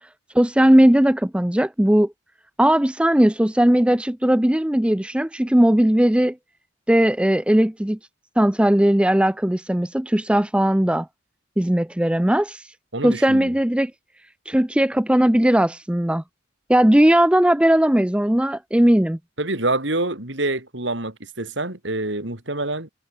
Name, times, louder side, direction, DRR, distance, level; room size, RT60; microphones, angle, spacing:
voice 1, 0.3-2.1 2.6-6.4 6.9-8.0 8.4-11.1 11.6-12.7 13.0-13.9 14.5-16.2 16.7-19.2, right 1 dB, 5° right, 0.5 m, -18 dB
voice 2, 12.9-13.5 19.4-22.9, right 2 dB, 65° right, 3.8 m, -26 dB
head